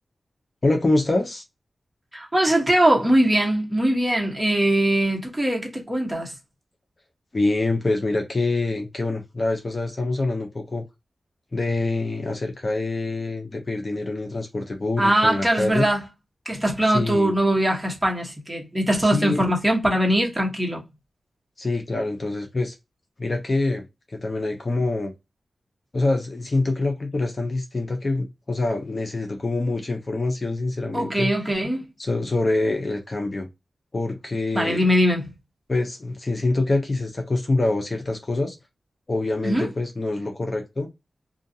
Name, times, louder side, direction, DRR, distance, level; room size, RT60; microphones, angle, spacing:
voice 1, 0.6-1.4 7.3-10.8 11.5-15.9 16.9-17.3 19.0-19.4 21.6-22.7 23.2-23.8 24.2-25.1 25.9-31.3 32.0-33.5 33.9-34.8 35.7-38.6 39.1-40.9, left 2 dB, 40° left, 0.7 m, -25 dB
voice 2, 2.1-6.3 15.0-16.1 16.4-20.8 30.9-31.9 34.5-35.3 39.4-39.7, right 1 dB, 15° right, 1.1 m, -21 dB
2.4 x 2.3 x 2.7 m
cardioid pair, 65°, 0 cm